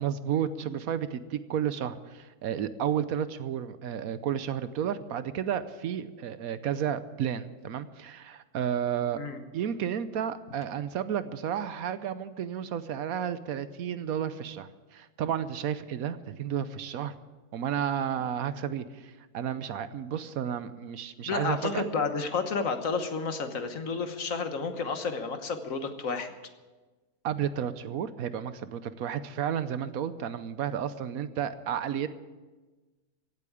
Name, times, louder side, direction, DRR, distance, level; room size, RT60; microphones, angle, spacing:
voice 1, 0.0-9.2 9.5-17.1 17.5-21.8 27.2-32.1, right 9 dB, 70° right, 13 dB, 1.1 m, -32 dB
voice 2, 21.2-26.3, left 4 dB, 60° left, 8 dB, 1.6 m, -31 dB
16.0 x 8.5 x 8.6 m, 1.2 s
omnidirectional pair, 1.6 m